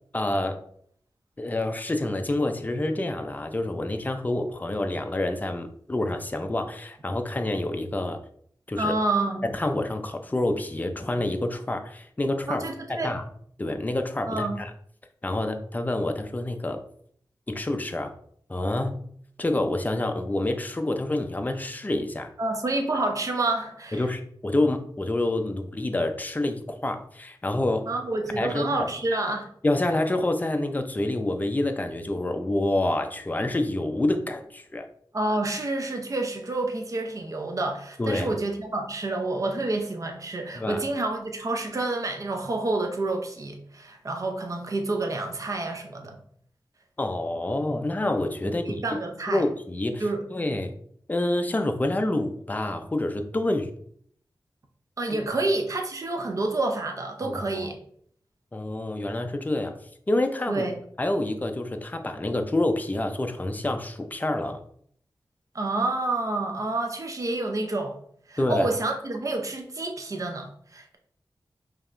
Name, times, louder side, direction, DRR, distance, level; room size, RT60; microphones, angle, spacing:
voice 1, 0.1-0.6 1.4-8.2 8.7-8.9 9.4-13.2 13.6-14.7 15.2-16.8 17.5-18.1 18.5-19.0 19.4-22.3 23.9-27.9 28.3-28.9 29.6-34.9 38.0-38.4 40.6-40.8 47.0-48.8 49.3-50.0 50.3-50.7 51.1-53.7 55.3-55.4 57.2-57.7 58.5-59.8 60.1-60.7 61.0-64.6 68.4-68.7, left 1 dB, 20° left, 0.4 m, -27 dB
voice 2, 8.8-9.4 12.5-13.1 14.3-14.6 22.4-24.0 27.9-29.5 35.1-46.2 48.4-49.4 50.0-50.2 55.0-57.8 60.5-60.7 65.5-68.0 68.3-71.0, right 2 dB, 45° right, 0.6 m, -28 dB
5.1 x 2.8 x 2.5 m
wide cardioid pair, 95°, 8 cm